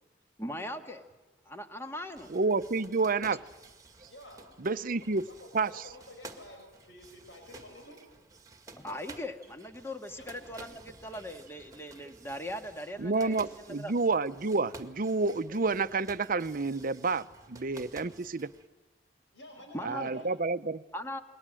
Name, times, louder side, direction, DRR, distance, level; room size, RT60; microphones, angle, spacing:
voice 1, 0.4-1.1 1.4-2.3 8.7-13.9 19.7-20.3 20.9-21.2, left 1 dB, 15° left, 6 dB, 1.7 m, -40 dB
sound 1, 2.1-18.7, right 3 dB, 20° right, 2.0 m, -52 dB
voice 2, 2.3-3.4 4.6-5.2 5.5-5.9 13.0-18.5 19.8-20.8, right 3 dB, 50° right, 13 dB, 0.7 m, -29 dB
voice 3, 4.1-4.8 5.3-8.0 10.2-10.3 19.3-20.3, left 1 dB, 75° left, 3 dB, 5.5 m, -50 dB
28.0 x 22.5 x 7.7 m, 1.2 s
head